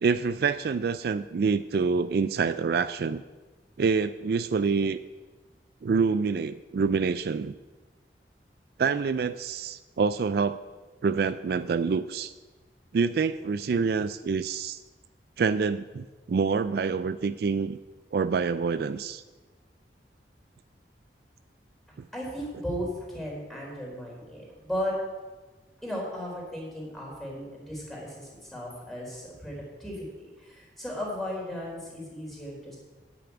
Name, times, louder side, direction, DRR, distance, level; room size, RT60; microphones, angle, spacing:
voice 1, 0.0-3.2 3.8-5.0 5.8-7.6 8.8-10.6 11.0-12.3 12.9-14.8 15.4-17.8 18.1-19.2 22.0-22.1, right 5 dB, 60° right, 13 dB, 0.3 m, -26 dB
voice 2, 22.1-24.9 25.8-32.8, equal, ahead, -3 dB, 3.7 m, -36 dB
9.4 x 6.9 x 9.0 m, 1.3 s
head